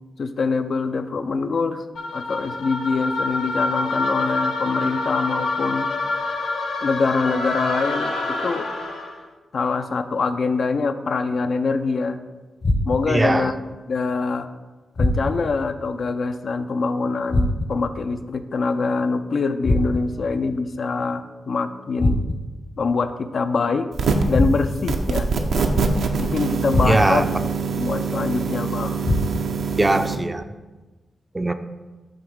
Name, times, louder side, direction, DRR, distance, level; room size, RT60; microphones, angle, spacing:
voice 1, 0.2-1.8 2.1-5.9 6.8-8.7 9.5-12.2 12.9-13.5 13.9-14.5 15.0-22.2 22.8-23.9 24.3-25.3 26.2-27.3 27.8-29.0, left 4 dB, 65° left, 9 dB, 0.4 m, -24 dB
sound 1, 1.9-9.2, left 2 dB, 85° left, 0.8 m, -26 dB
sound 2, 12.6-13.2 15.0-15.6 17.3-17.9 19.6-20.3 22.0-22.6 24.3-25.0 26.7-27.3 29.0-29.6, left 1 dB, 45° left, 0.8 m, -23 dB
voice 2, 13.1-13.5 26.8-27.3 29.8-30.4 31.3-31.5, right 2 dB, 20° right, 10 dB, 0.4 m, -20 dB
sound 3, 23.9-24.4 24.9-30.2, right 5 dB, 80° right, 0.6 m, -24 dB
7.8 x 3.1 x 5.1 m, 1.2 s
cardioid pair, 70°, 0 cm